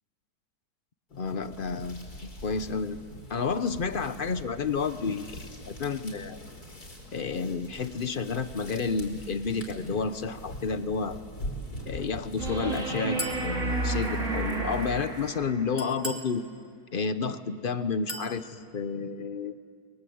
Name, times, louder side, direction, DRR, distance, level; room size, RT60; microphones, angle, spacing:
sound 1, 1.1-15.6, equal, 70° left, 4.8 m, -44 dB
voice 1, 1.1-2.1 2.4-3.0 3.3-5.3 5.7-6.4 7.1-11.2 11.9-16.5 16.9-19.5, left 5 dB, 40° left, 11 dB, 0.8 m, -30 dB
sound 2, 12.4-15.7 18.4-18.5, right 3 dB, 50° right, 2.9 m, -31 dB
Chink clink, 13.2-13.5 15.8-16.3 18.1-18.4, equal, 10° right, 2.3 m, -36 dB
29.0 x 21.5 x 7.9 m, 2.1 s
omnidirectional pair, 1.7 m